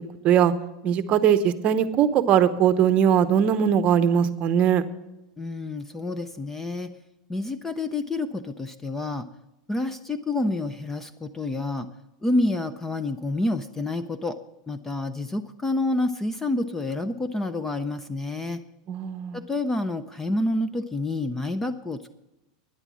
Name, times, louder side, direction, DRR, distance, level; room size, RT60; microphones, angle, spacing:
voice 1, 0.8-4.8 18.9-19.4, right 9 dB, 35° right, 12 dB, 0.8 m, -20 dB
voice 2, 5.4-6.9 7.3-9.3 9.7-11.9 12.2-14.4 14.7-18.6 19.3-22.1, left 2 dB, 10° left, 12 dB, 0.5 m, -28 dB
12.0 x 10.0 x 6.2 m, 0.95 s
supercardioid pair, 145°, 4 cm